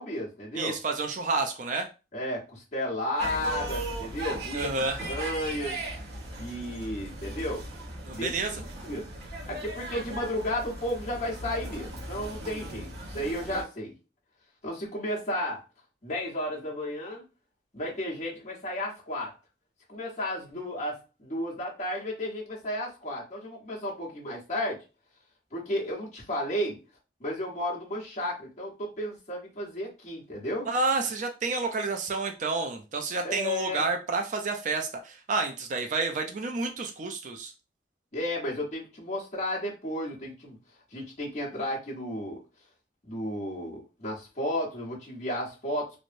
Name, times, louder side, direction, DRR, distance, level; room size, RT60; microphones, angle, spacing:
voice 1, 0.0-0.8 2.1-5.8 6.4-7.6 8.1-9.1 9.5-13.9 14.6-15.6 16.0-17.2 17.7-19.3 19.9-24.8 25.5-26.8 27.2-30.7 33.2-33.9 38.1-40.6 40.9-42.4 43.0-46.0, left 1 dB, 40° left, -5 dB, 1.1 m, -33 dB
voice 2, 0.5-1.9 4.5-5.0 8.0-8.5 30.7-37.5, right 3 dB, 45° right, 5 dB, 0.4 m, -29 dB
sound 1, 3.2-13.6, right 2 dB, 70° right, 0.8 m, -38 dB
3.1 x 2.1 x 2.5 m, 0.30 s
head